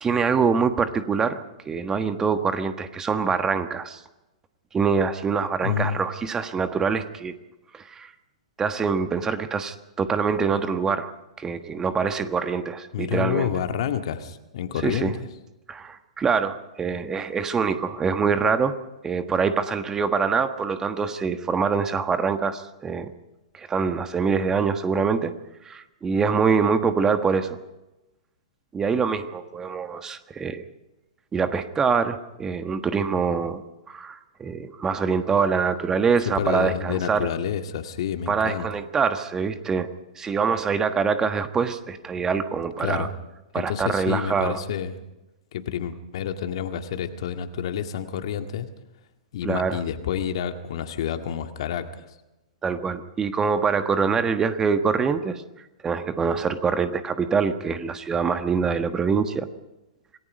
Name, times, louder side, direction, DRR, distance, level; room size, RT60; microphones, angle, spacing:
voice 1, 0.0-4.0 4.7-7.3 7.7-8.1 8.6-13.5 14.8-15.1 15.7-18.8 19.0-23.1 23.5-25.3 25.6-27.6 28.7-30.6 31.3-33.6 33.9-37.3 38.3-39.9 40.1-43.1 43.5-44.6 49.4-49.8 52.6-55.4 55.8-59.5, right 5 dB, 15° right, 9 dB, 1.4 m, -24 dB
voice 2, 5.6-6.0 12.9-15.2 36.4-38.7 42.8-43.1 43.5-44.9 45.5-48.7 49.3-52.1, left 8 dB, 55° left, 7 dB, 1.9 m, -29 dB
27.0 x 19.0 x 5.3 m, 0.98 s
figure-of-eight pair, 110°, 3 cm